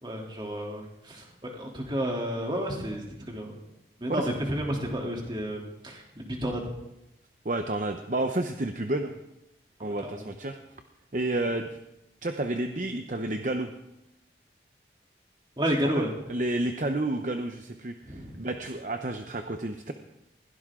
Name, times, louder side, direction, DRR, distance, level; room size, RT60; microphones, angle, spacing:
voice 1, 0.0-3.6 4.0-6.6 9.8-10.3 15.6-16.1 18.0-18.4, equal, 25° right, -1 dB, 3.2 m, -31 dB
voice 2, 7.4-9.1 9.8-10.6 11.1-11.7 12.2-13.7 16.0-19.9, right 2 dB, 45° right, 6 dB, 0.8 m, -30 dB
21.0 x 16.5 x 3.8 m, 0.93 s
head